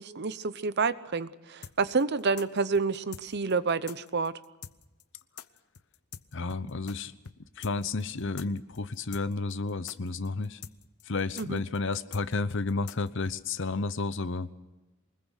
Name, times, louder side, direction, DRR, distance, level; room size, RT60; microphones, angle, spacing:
voice 1, 0.0-4.4 11.4-11.6, right 4 dB, 50° right, 15 dB, 0.8 m, -29 dB
sound 1, 1.6-7.0 7.2-7.4 7.6-13.4, left 7 dB, 90° left, 0.9 m, -45 dB
voice 2, 6.3-7.1 7.6-10.6 11.1-14.5, left 3 dB, 60° left, 14 dB, 0.9 m, -31 dB
24.0 x 21.0 x 6.4 m, 1.0 s
head